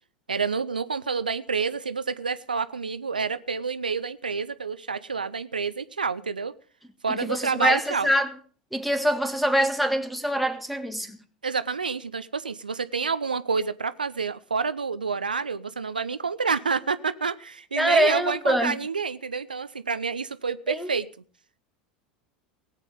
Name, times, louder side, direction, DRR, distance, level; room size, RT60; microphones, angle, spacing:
voice 1, 0.3-6.5 7.0-8.1 11.4-21.1, right 5 dB, 85° right, 0.6 m, -28 dB
voice 2, 7.2-8.3 8.7-11.2 17.8-18.8 20.7-20.9, equal, ahead, 1.7 m, -24 dB
18.5 x 8.3 x 5.3 m
figure-of-eight pair, 80°, 5 cm